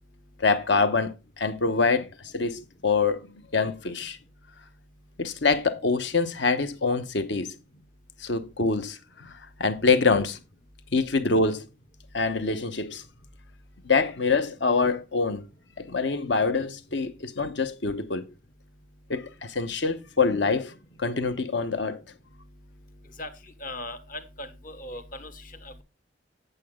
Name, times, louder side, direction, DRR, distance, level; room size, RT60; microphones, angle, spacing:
voice 1, 0.4-2.1 2.3-3.2 3.5-4.2 5.2-7.5 8.2-9.3 9.6-10.4 10.9-11.6 12.1-13.0 13.8-15.4 15.8-18.2 19.1-20.7 21.0-22.0, left 4 dB, 65° left, 0.9 m, -25 dB
voice 2, 23.6-25.8, left 1 dB, 45° left, 1.1 m, -39 dB
8.3 x 7.8 x 3.6 m
head